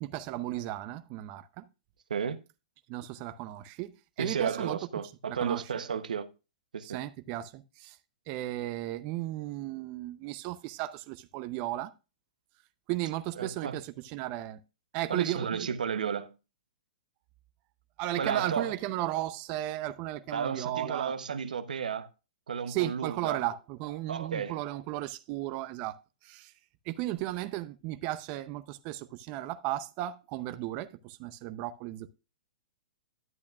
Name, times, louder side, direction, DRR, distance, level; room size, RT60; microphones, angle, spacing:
voice 1, 0.0-1.7 2.9-4.8 5.3-5.6 6.8-8.0 8.3-11.9 12.9-14.6 14.9-15.5 18.0-21.1 22.7-26.0 26.2-26.5 26.9-32.1, right 15 dB, 40° right, 0.6 m, -35 dB
voice 2, 2.1-2.4 4.2-6.3 6.7-7.0 13.4-13.8 15.1-16.3 18.2-18.8 20.3-22.1 22.5-23.4 24.1-24.6, right 6 dB, 85° right, 0.9 m, -33 dB
11.0 x 8.2 x 2.4 m
hypercardioid pair, 135°, 4 cm